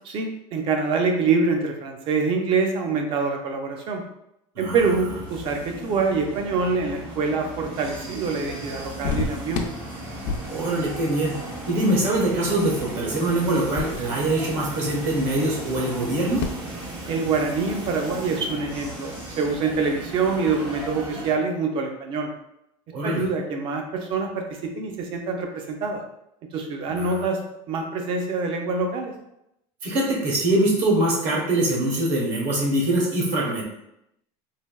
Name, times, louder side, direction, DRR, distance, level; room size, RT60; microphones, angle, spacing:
voice 1, 0.1-4.0 4.6-9.7 17.1-22.3 23.0-26.0 26.5-27.4 27.7-29.1, right 4 dB, 40° right, 3 dB, 0.4 m, -25 dB
sound 1, 4.8-21.3, right 1 dB, 85° right, 1.3 m, -36 dB
sound 2, 9.0-16.5, left 4 dB, 70° left, 0.4 m, -35 dB
voice 2, 10.5-11.3 11.7-16.4 22.9-23.3 26.9-27.2 29.8-33.7, right 1 dB, 60° right, -3 dB, 1.0 m, -23 dB
3.3 x 2.6 x 2.2 m, 0.81 s
cardioid pair, 170°, 14 cm